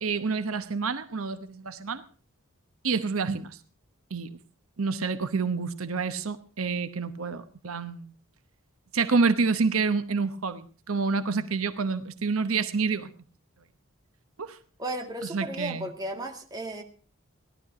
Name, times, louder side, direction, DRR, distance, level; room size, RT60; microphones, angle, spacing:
voice 1, 0.0-2.0 2.8-3.6 4.1-4.4 4.8-8.1 8.9-13.1 14.4-14.6 15.3-15.9, right 4 dB, 85° right, 10 dB, 1.0 m, -28 dB
voice 2, 14.8-16.8, right 1 dB, 20° right, 2 dB, 2.1 m, -34 dB
17.5 x 12.0 x 4.9 m, 0.41 s
head